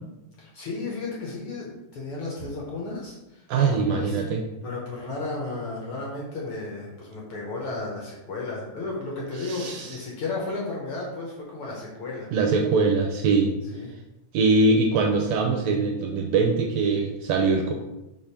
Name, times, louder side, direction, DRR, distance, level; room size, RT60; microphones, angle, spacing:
voice 1, 0.4-3.4 3.7-4.2 4.6-12.3 13.7-13.9, left 3 dB, 60° left, -3 dB, 1.6 m, -33 dB
voice 2, 3.5-4.4 9.4-10.0 12.3-13.6 14.3-17.7, right 4 dB, 75° right, 3 dB, 1.7 m, -22 dB
5.1 x 3.7 x 5.7 m, 0.96 s
omnidirectional pair, 3.5 m